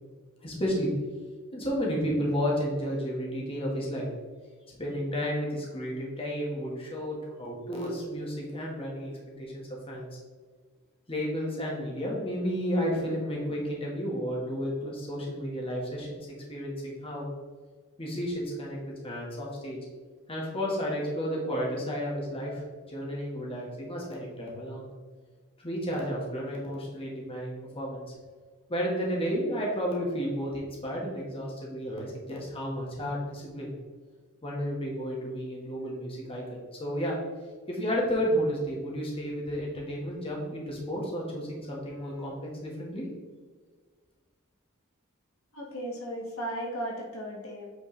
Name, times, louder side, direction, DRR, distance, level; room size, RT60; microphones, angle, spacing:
voice 1, 0.4-0.9 1.5-4.1 4.8-10.2 11.1-16.2 16.5-17.3 18.0-18.8 19.0-19.8 20.3-24.9 25.6-28.1 28.7-33.7 34.4-37.2 37.7-43.0, equal, 25° left, -3 dB, 1.6 m, -32 dB
voice 2, 45.5-47.7, equal, 75° left, -2 dB, 1.7 m, -36 dB
8.5 x 4.5 x 3.3 m, 1.5 s
head